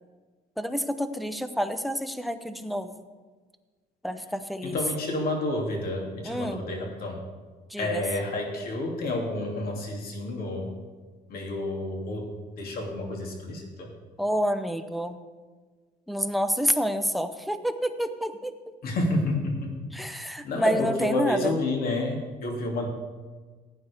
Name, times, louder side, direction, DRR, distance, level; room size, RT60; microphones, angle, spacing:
voice 1, 0.6-3.1 4.0-4.8 6.2-6.7 7.7-8.0 14.2-15.2 16.1-18.5 19.9-21.5, equal, ahead, 10 dB, 0.7 m, -28 dB
voice 2, 4.6-7.2 7.8-10.7 11.3-13.9 18.8-19.8 20.4-22.9, left 2 dB, 60° left, 1 dB, 2.7 m, -30 dB
16.0 x 9.5 x 3.5 m, 1.4 s
cardioid pair, 110°, 17 cm